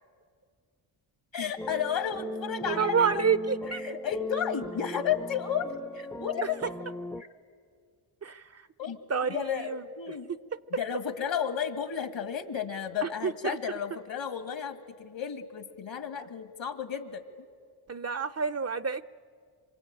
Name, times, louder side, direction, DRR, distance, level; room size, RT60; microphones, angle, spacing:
voice 1, 1.3-3.2 3.6-5.7 5.9-6.5 7.2-7.3 8.8-10.3 10.8-17.2, left 8 dB, 65° left, 7 dB, 2.3 m, -33 dB
sound 1, 1.6-7.2, left 1 dB, 5° left, 0.6 m, -38 dB
voice 2, 2.7-3.8 8.2-8.6 9.1-10.1 13.0-13.6 16.1-16.2 17.9-19.0, right 6 dB, 30° right, 16 dB, 0.6 m, -29 dB
26.5 x 23.5 x 8.9 m, 2.2 s
cardioid pair, 60°, 48 cm